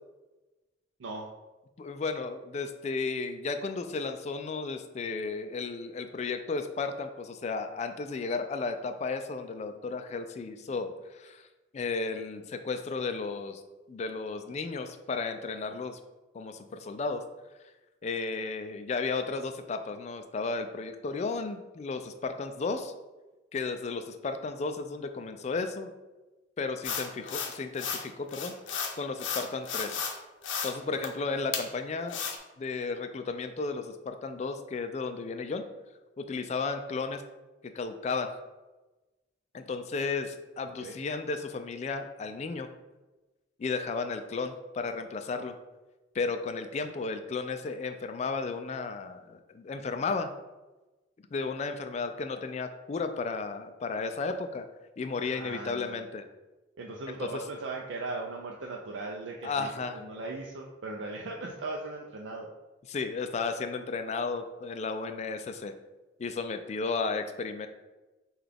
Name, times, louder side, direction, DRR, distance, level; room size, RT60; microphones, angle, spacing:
voice 1, 1.8-11.5 11.7-13.6 13.9-16.0 16.3-17.2 18.0-22.9 23.5-25.9 26.6-28.5 29.0-30.0 30.6-32.2 32.6-35.6 36.2-37.2 37.6-38.3 39.5-42.7 43.6-45.5 46.1-50.3 51.3-54.7 55.0-56.2 57.2-57.3 59.4-60.0 62.9-65.7 66.2-67.7, left 4 dB, 35° left, 8 dB, 0.3 m, -34 dB
sound 1, 26.8-28.0 28.3-30.2 30.4-30.7 31.0-31.1 31.5-31.6 32.1-32.4, left 6 dB, 90° left, 0.6 m, -33 dB
voice 2, 55.2-56.0 56.8-62.5, right 3 dB, 80° right, -1 dB, 0.4 m, -38 dB
5.7 x 2.3 x 3.4 m, 1.1 s
head